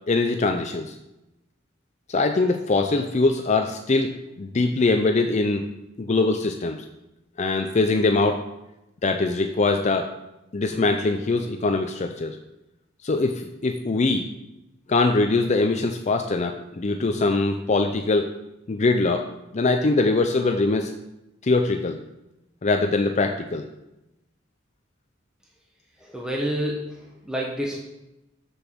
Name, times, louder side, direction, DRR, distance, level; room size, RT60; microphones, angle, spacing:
voice 1, 0.1-1.0 2.1-5.7 6.0-6.9 7.4-8.4 9.0-10.1 10.5-12.4 13.0-14.3 14.9-18.3 18.7-19.3 19.5-20.9 21.4-22.0 22.6-23.7, left 3 dB, 35° left, 5 dB, 0.5 m, -22 dB
voice 2, 26.0-27.8, equal, 5° right, -3 dB, 1.0 m, -29 dB
7.1 x 6.9 x 6.0 m, 0.92 s
head